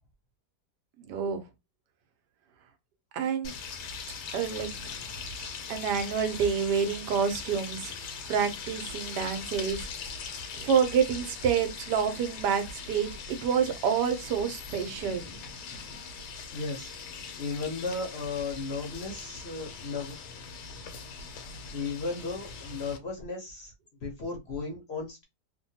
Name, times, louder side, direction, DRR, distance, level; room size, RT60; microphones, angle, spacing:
voice 1, 1.0-1.4 3.1-3.5 4.3-4.7 5.7-7.9 8.3-9.8 10.5-15.3, right 7 dB, 85° right, 1.3 m, -28 dB
sound 1, 3.4-23.0, left 5 dB, 85° left, 1.3 m, -41 dB
voice 2, 4.5-5.6 14.7-16.0 16.5-16.9 17.4-20.1 21.7-23.7 24.0-25.2, left 4 dB, 55° left, 0.8 m, -36 dB
3.0 x 2.2 x 2.7 m
omnidirectional pair, 1.7 m